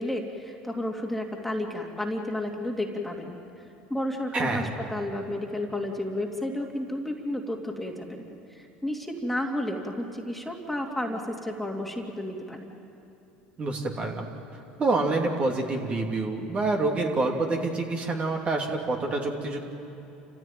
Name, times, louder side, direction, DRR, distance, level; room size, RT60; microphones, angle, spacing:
voice 1, 0.0-3.6 3.9-12.7, left 1 dB, 5° left, 0 dB, 2.8 m, -32 dB
voice 2, 4.3-4.7 13.6-14.3 14.8-19.6, right 3 dB, 35° right, 1 dB, 2.9 m, -27 dB
28.5 x 15.5 x 9.1 m, 2.9 s
hypercardioid pair, 85°, 4 cm